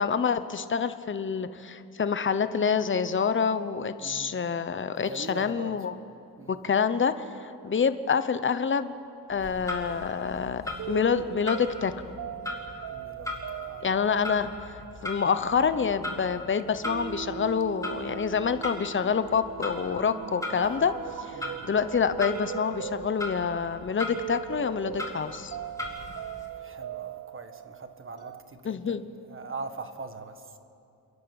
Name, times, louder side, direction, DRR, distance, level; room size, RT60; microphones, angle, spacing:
voice 1, 0.0-6.0 6.5-8.9 9.3-12.1 13.8-14.8 15.0-20.9 21.2-25.6 28.6-29.0, left 6 dB, 30° left, 12 dB, 0.9 m, -27 dB
voice 2, 4.0-4.3 5.0-5.8 6.4-6.6 12.9-13.4 13.6-13.8 21.3-21.6 26.5-30.4, right 3 dB, 35° right, 8 dB, 1.5 m, -41 dB
Clock, 9.3-26.5, left 2 dB, 10° left, 3.1 m, -39 dB
sound 1, 9.8-28.4, right 10 dB, 50° right, 0.6 m, -40 dB
29.0 x 11.5 x 8.7 m, 2.6 s
cardioid pair, 105°, 38 cm